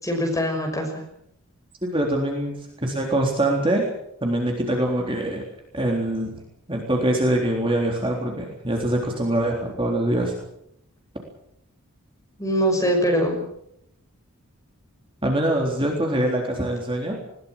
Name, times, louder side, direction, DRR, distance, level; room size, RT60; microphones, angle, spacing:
voice 1, 0.0-1.0 12.4-13.4, equal, 15° left, 2 dB, 6.1 m, -22 dB
voice 2, 1.9-3.9 4.2-5.4 5.7-6.3 6.7-10.3 15.2-17.1, right 1 dB, 25° right, 0 dB, 3.7 m, -24 dB
21.0 x 19.5 x 7.4 m, 0.74 s
head